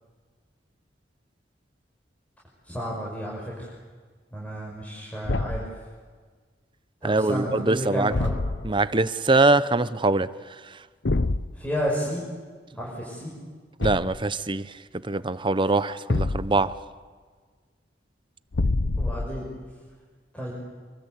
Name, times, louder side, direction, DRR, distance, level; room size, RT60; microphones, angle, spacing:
voice 1, 2.6-3.7 4.3-5.6 7.0-8.3 11.5-12.2 12.8-13.3 18.9-19.4 20.3-20.5, equal, 10° left, -5 dB, 6.0 m, -31 dB
Thump thud, 5.2-5.8 8.1-8.8 11.1-11.5 13.8-14.3 16.1-16.7 18.5-19.5, left 2 dB, 85° left, 0.9 m, -26 dB
voice 2, 7.0-8.1 8.6-10.3 13.8-14.7 15.0-16.7, right 2 dB, 30° right, 14 dB, 0.9 m, -23 dB
27.0 x 23.5 x 8.4 m, 1.5 s
head